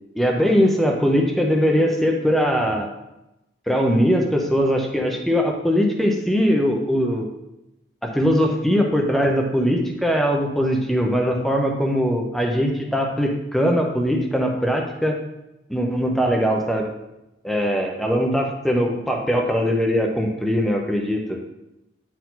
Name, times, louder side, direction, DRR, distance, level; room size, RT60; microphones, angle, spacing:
voice 1, 0.1-2.9 3.7-7.3 8.0-15.2 15.7-16.9 17.4-21.4, equal, ahead, 1 dB, 0.8 m, -21 dB
9.8 x 4.7 x 3.9 m, 0.92 s
head